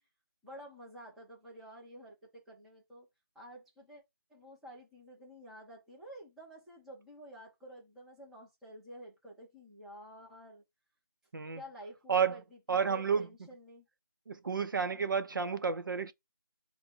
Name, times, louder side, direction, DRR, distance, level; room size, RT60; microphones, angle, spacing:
voice 1, 0.4-3.1 3.3-4.0 4.3-10.6 11.5-12.4 12.7-13.9, right 1 dB, ahead, 0.7 m, -51 dB
voice 2, 12.1-12.4 12.7-13.3 14.3-16.1, right 6 dB, 60° right, 0.6 m, -31 dB
5.7 x 2.2 x 4.2 m
figure-of-eight pair, 165°, 12 cm